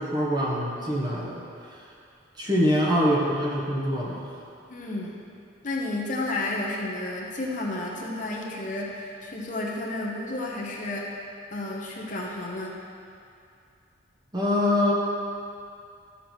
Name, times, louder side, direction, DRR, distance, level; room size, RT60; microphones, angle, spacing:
voice 1, 0.0-1.4 2.4-4.3 14.3-14.9, left 1 dB, 20° right, -5 dB, 1.3 m, -24 dB
voice 2, 4.7-5.2 5.6-11.2 11.5-12.8, left 2 dB, 40° left, -2 dB, 1.1 m, -31 dB
12.5 x 7.0 x 4.5 m, 2.5 s
head